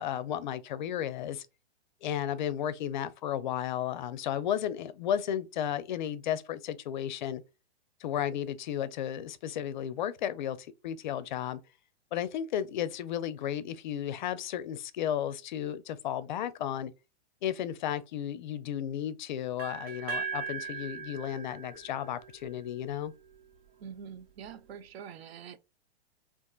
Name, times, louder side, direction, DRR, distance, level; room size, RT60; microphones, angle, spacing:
voice 1, 0.0-1.5 2.0-7.4 8.0-11.6 12.1-16.9 17.4-23.1, left 10 dB, 45° left, 0.4 m, -33 dB
sound 1, 19.6-23.5, right 5 dB, 25° right, 0.8 m, -40 dB
voice 2, 23.8-25.6, right 7 dB, 65° right, 0.6 m, -45 dB
3.7 x 2.5 x 2.3 m
hypercardioid pair, 160°, 33 cm